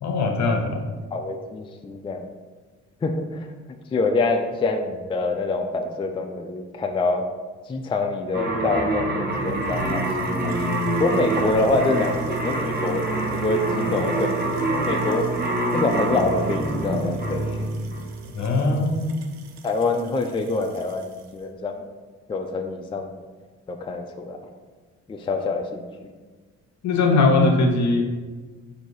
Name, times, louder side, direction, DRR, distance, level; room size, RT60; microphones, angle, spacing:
voice 1, 0.0-0.8 18.3-19.1 26.8-28.1, left 3 dB, 65° left, 3 dB, 0.8 m, -20 dB
voice 2, 1.1-2.3 3.0-3.5 3.9-7.3 7.7-10.5 11.0-13.0 13.3-15.3 15.7-17.6 18.7-18.8 19.6-21.8 22.3-23.1 23.7-24.4 25.1-25.9, left 3 dB, 20° left, 5 dB, 0.3 m, -26 dB
sound 1, 8.3-18.5, right 2 dB, 30° right, 1.0 m, -26 dB
sound 2, 9.4-21.4, right 6 dB, 65° right, 0.5 m, -38 dB
4.0 x 2.7 x 4.7 m, 1.4 s
cardioid pair, 90°, 30 cm